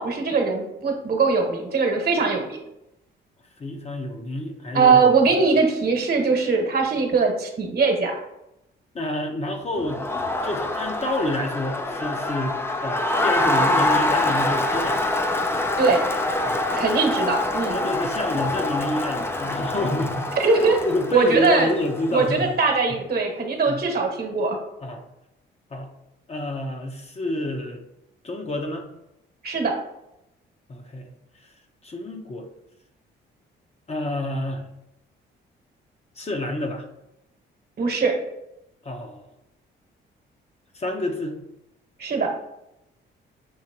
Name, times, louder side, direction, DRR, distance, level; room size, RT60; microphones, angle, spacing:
voice 1, 0.0-2.6 4.7-8.2 15.8-16.0 16.8-17.9 20.4-20.8 21.1-21.7 22.1-24.6 29.4-29.7 37.8-38.1 42.0-42.3, right 4 dB, 50° right, 3 dB, 1.2 m, -21 dB
voice 2, 3.6-5.0 8.9-10.0 10.4-12.6 12.8-15.0 16.4-16.7 17.0-17.1 17.5-20.3 20.8-22.5 23.7-23.8 24.8-25.0 25.7-25.9 26.3-27.8 28.2-28.8 30.7-31.1 31.8-32.5 33.9-34.6 36.2-36.9 38.8-39.3 40.7-41.4, left 1 dB, 30° left, 3 dB, 0.8 m, -28 dB
Crowd, 9.8-22.3, left 2 dB, 10° left, 0.5 m, -25 dB
6.3 x 2.8 x 2.9 m, 0.85 s
cardioid pair, 90°, 20 cm